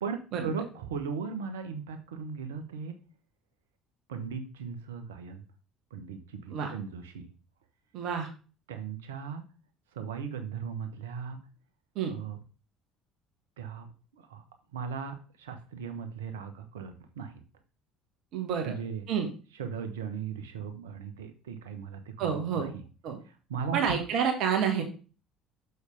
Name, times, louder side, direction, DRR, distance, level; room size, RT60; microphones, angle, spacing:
voice 1, 0.0-3.0 4.1-5.4 5.9-7.3 8.7-9.4 9.9-11.4 12.1-12.4 13.6-13.9 14.1-14.4 14.7-17.3 18.6-19.0 19.6-22.7 23.3-23.9, right 6 dB, 70° right, 7 dB, 1.1 m, -37 dB
voice 2, 7.9-8.3 11.9-12.1 18.3-18.7 19.1-19.3 22.2-22.7 23.0-23.2 23.7-24.8, right 7 dB, 55° right, 4 dB, 1.5 m, -29 dB
6.7 x 6.3 x 3.4 m, 0.35 s
figure-of-eight pair, 55°, 0 cm